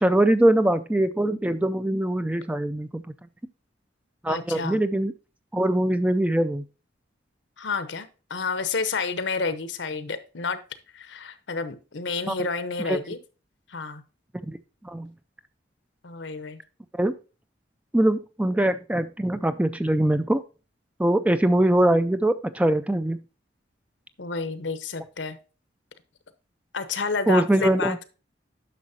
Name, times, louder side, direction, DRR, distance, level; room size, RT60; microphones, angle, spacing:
voice 1, 0.0-3.1 4.2-5.1 5.5-6.6 12.3-12.4 12.8-13.0 14.5-14.6 14.8-15.1 16.9-17.1 17.9-20.4 21.0-23.2 27.3-28.0, right 1 dB, 5° right, 11 dB, 0.4 m, -22 dB
voice 2, 4.3-4.8 7.6-10.6 10.9-13.2 13.7-14.0 16.0-16.6 24.2-25.4 26.7-27.9, left 4 dB, 75° left, 13 dB, 0.9 m, -30 dB
10.0 x 6.3 x 2.7 m, 0.33 s
head